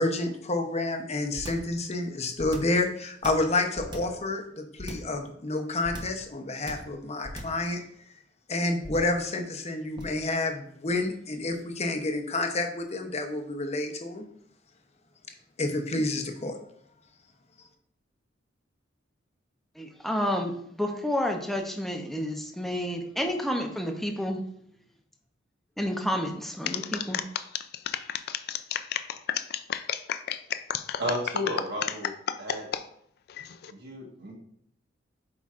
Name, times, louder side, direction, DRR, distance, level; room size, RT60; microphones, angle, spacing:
voice 1, 0.0-7.8 8.5-14.2 15.6-16.6, left 2 dB, 35° left, 4 dB, 0.8 m, -29 dB
sound 1, 1.3-1.7 2.4-2.8 3.2-4.2 4.8-5.2 5.8-6.2 6.7-7.0 7.2-7.6 8.8-9.2 10.0-10.2, equal, 25° right, 0.9 m, -39 dB
voice 2, 19.8-20.5 20.8-24.4 25.8-27.2, equal, ahead, 3 dB, 0.7 m, -30 dB
sound 2, 26.6-32.8 33.3-33.7, left 9 dB, 55° left, 0.3 m, -31 dB
voice 3, 31.0-32.1 32.4-32.7 33.7-34.3, equal, 60° right, 0 dB, 1.6 m, -32 dB
8.2 x 4.8 x 2.5 m, 0.69 s
head